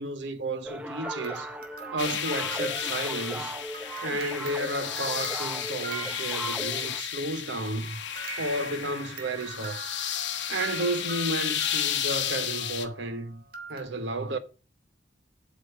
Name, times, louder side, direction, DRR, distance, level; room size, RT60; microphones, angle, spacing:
voice 1, 0.0-1.5 1.9-3.6 4.0-8.0 8.4-9.8 10.5-13.4 13.7-14.4, right 1 dB, 70° right, 1.1 m, -32 dB
sound 1, 0.6-7.0, right 1 dB, 10° right, 0.7 m, -38 dB
sound 2, 1.0-6.8 7.7-13.8, right 4 dB, 55° right, 1.6 m, -43 dB
sound 3, 2.0-12.9, left 10 dB, 70° left, 1.2 m, -33 dB
8.2 x 5.2 x 6.7 m
head